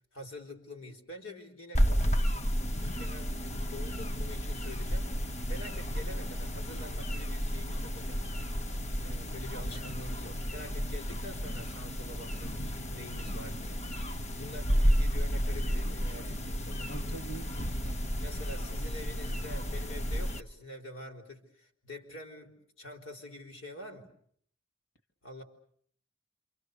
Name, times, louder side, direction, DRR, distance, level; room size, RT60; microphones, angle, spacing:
voice 1, 0.1-2.2 2.8-8.2 9.0-13.8 14.3-16.9 18.2-24.1 25.2-25.4, left 1 dB, 80° left, 4 dB, 4.2 m, -46 dB
sound 1, 1.7-20.4, equal, 35° left, 1.0 m, -32 dB
voice 2, 16.9-18.0, right 2 dB, 65° left, 6 dB, 2.7 m, -44 dB
28.0 x 26.5 x 6.7 m, 0.63 s
head